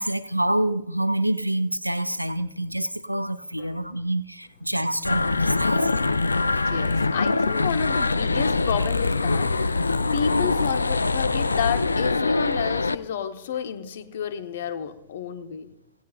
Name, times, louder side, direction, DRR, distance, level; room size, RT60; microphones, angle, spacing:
voice 1, 0.0-5.9, right 1 dB, 90° right, 0.4 m, -27 dB
sound 1, 5.0-12.9, left 3 dB, 80° left, 0.4 m, -23 dB
voice 2, 6.6-15.7, left 7 dB, 60° left, 1.1 m, -30 dB
18.0 x 16.5 x 2.5 m
figure-of-eight pair, 90°, 0 cm